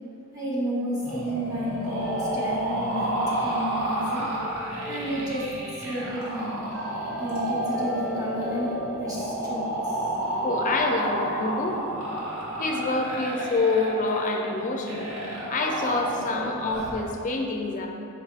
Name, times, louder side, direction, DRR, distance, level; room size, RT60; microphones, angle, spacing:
voice 1, 0.3-4.2 4.9-5.4 5.8-6.6 7.2-8.7 9.0-10.0, equal, 15° right, -8 dB, 0.9 m, -31 dB
sound 1, 1.0-17.0, right 1 dB, 85° right, 1.1 m, -30 dB
sound 2, 2.0-3.3 3.7-5.8 6.7-9.2 9.9-10.0 10.1-10.8, left 1 dB, 40° right, 1.2 m, -42 dB
voice 2, 10.4-11.8 12.6-15.1 15.5-17.9, left 3 dB, 35° left, 2 dB, 0.4 m, -27 dB
4.8 x 4.5 x 2.4 m, 2.7 s
head